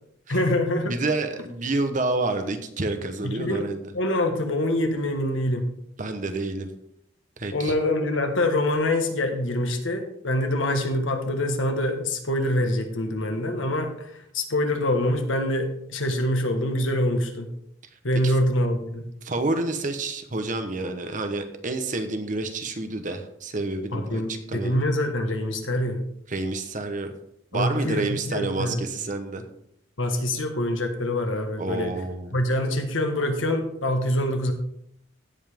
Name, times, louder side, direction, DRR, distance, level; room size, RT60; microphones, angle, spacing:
voice 1, 0.3-0.9 3.2-5.6 7.5-17.5 18.0-19.1 23.9-26.0 27.5-28.9 30.0-31.9 32.3-34.5, left 1 dB, 75° left, 5 dB, 1.5 m, -25 dB
voice 2, 0.9-3.9 6.0-6.7 7.4-7.7 18.2-18.3 19.2-24.8 26.3-27.1 27.5-29.4 31.6-32.3, right 2 dB, 40° right, 7 dB, 1.0 m, -29 dB
16.0 x 5.6 x 3.6 m, 0.73 s
head